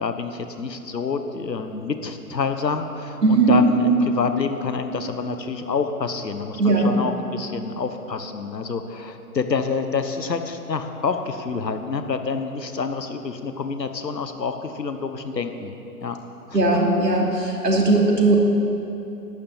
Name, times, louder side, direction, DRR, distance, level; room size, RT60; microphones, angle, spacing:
voice 1, 0.0-15.7 16.0-16.2 16.5-16.6, left 5 dB, 85° left, 8 dB, 1.3 m, -27 dB
voice 2, 3.2-3.6 6.6-6.9 16.5-18.4, right 3 dB, 80° right, -1 dB, 3.0 m, -18 dB
11.5 x 9.7 x 7.4 m, 2.9 s
figure-of-eight pair, 135°, 49 cm